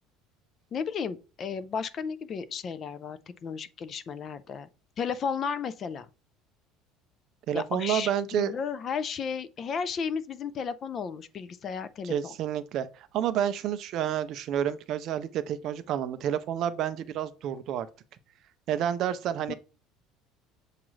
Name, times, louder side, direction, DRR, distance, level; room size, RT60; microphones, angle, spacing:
voice 1, 0.7-4.7 5.0-6.1 7.5-12.3 19.5-19.6, left 6 dB, 30° left, 0.3 m, -34 dB
voice 2, 7.5-8.6 12.0-17.9 18.7-19.5, right 10 dB, 45° right, 0.4 m, -29 dB
7.2 x 2.4 x 3.1 m
cardioid pair, 160°, 0 cm